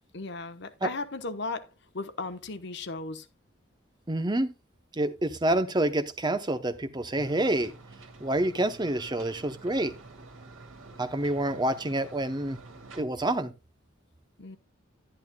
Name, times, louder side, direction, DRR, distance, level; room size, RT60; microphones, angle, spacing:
voice 1, 0.1-1.7 1.9-3.3 14.4-14.6, left 3 dB, 60° left, 1.0 m, -36 dB
voice 2, 4.1-4.5 5.0-7.7 8.2-9.9 11.0-12.6 12.9-13.5, right 1 dB, 20° right, 0.8 m, -27 dB
sound 1, 7.2-13.0, right 3 dB, 85° right, 2.3 m, -48 dB
11.0 x 10.5 x 2.3 m
head